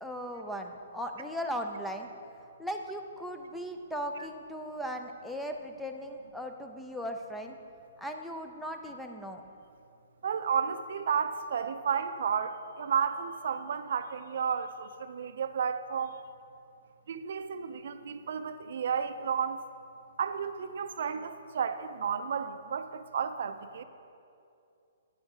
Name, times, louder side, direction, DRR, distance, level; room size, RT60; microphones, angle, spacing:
voice 1, 0.0-2.1 2.6-7.6 8.0-9.4, equal, ahead, 4 dB, 0.4 m, -37 dB
voice 2, 10.2-16.2 17.1-19.6 20.2-23.8, right 7 dB, 65° right, 10 dB, 0.4 m, -32 dB
9.1 x 6.3 x 4.9 m, 2.6 s
hypercardioid pair, 150°, 0 cm